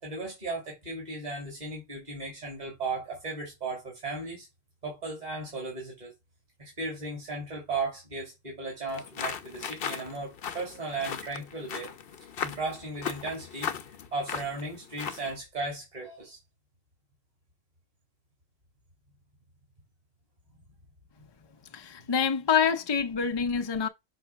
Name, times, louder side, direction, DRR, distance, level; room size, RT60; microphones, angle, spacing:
voice 1, 0.0-4.5 4.8-6.1 6.6-11.9 12.4-13.7 14.1-16.4 20.5-20.6, right 3 dB, 40° right, 2.5 m, -36 dB
sound 1, 8.9-15.4, left 7 dB, 65° left, 0.9 m, -38 dB
voice 2, 21.7-23.9, left 7 dB, 30° left, 0.5 m, -26 dB
5.9 x 3.2 x 5.7 m
omnidirectional pair, 1.1 m